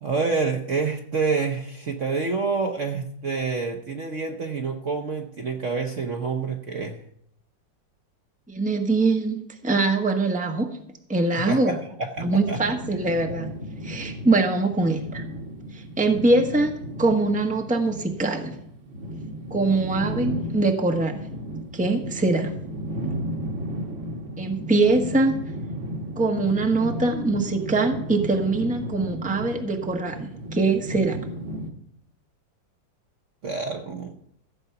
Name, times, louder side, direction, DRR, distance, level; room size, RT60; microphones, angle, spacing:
voice 1, 0.0-7.0 11.5-12.6 33.4-34.1, right 4 dB, 50° right, 4 dB, 1.1 m, -27 dB
voice 2, 8.5-10.7 11.1-11.8 12.2-13.5 13.8-15.2 15.7-16.7 17.0-18.5 19.5-21.3 21.7-22.5 24.4-25.4 26.2-31.3, right 3 dB, 5° right, 3 dB, 1.0 m, -23 dB
sound 1, 12.2-31.7, equal, 80° right, 2.2 m, -34 dB
15.0 x 8.0 x 5.9 m, 0.73 s
omnidirectional pair, 2.1 m